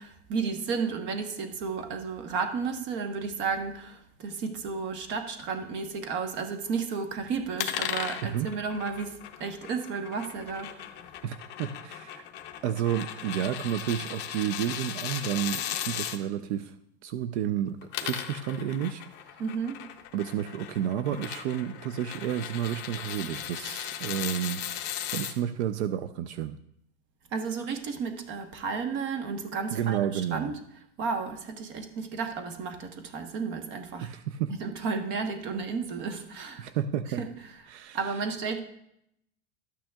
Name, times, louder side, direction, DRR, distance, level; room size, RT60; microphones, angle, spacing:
voice 1, 0.0-10.7 19.4-19.9 27.3-30.6 31.0-34.1 34.6-36.7 37.2-37.3 37.9-38.6, right 5 dB, 35° right, 6 dB, 1.0 m, -33 dB
sound 1, 7.6-16.2 17.7-25.3, left 11 dB, 30° left, 0.7 m, -37 dB
voice 2, 11.2-12.2 12.6-16.8 17.0-19.4 20.1-24.6 25.1-26.6 29.7-30.5 34.0-34.5 36.6-37.2 37.7-38.1, right 10 dB, 75° right, 10 dB, 0.6 m, -31 dB
13.0 x 8.9 x 2.3 m, 0.76 s
supercardioid pair, 165°, 34 cm